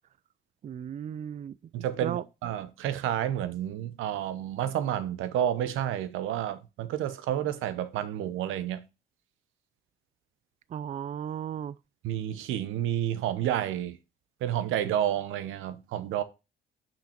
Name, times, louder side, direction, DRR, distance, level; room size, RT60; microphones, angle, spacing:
voice 1, 0.6-1.6 2.0-2.2 10.7-11.8, right 9 dB, 40° right, 0.4 m, -35 dB
voice 2, 1.7-8.8 12.0-14.0 14.4-16.2, right 11 dB, 90° right, 0.8 m, -30 dB
5.8 x 5.7 x 4.3 m
cardioid pair, 90°, 20 cm